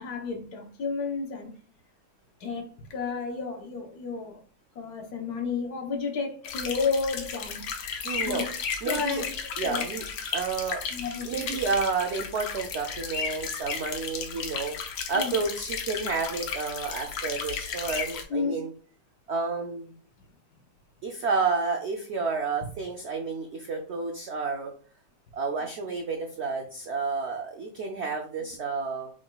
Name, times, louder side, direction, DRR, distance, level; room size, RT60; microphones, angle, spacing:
voice 1, 0.0-1.5 2.4-4.4 4.8-7.7 8.3-8.4 8.8-9.3 9.6-9.8 10.9-11.6 15.1-15.3 18.3-18.5, left 5 dB, 65° left, 1.3 m, -31 dB
sound 1, 6.4-18.2, left 6 dB, 85° left, 1.4 m, -34 dB
voice 2, 8.0-8.5 8.8-9.2 9.6-10.0 10.3-10.8 11.2-14.8 15.1-18.7 19.3-19.9 21.0-24.7 25.3-29.1, right 4 dB, 75° right, 0.6 m, -30 dB
6.2 x 3.6 x 2.2 m
omnidirectional pair, 1.8 m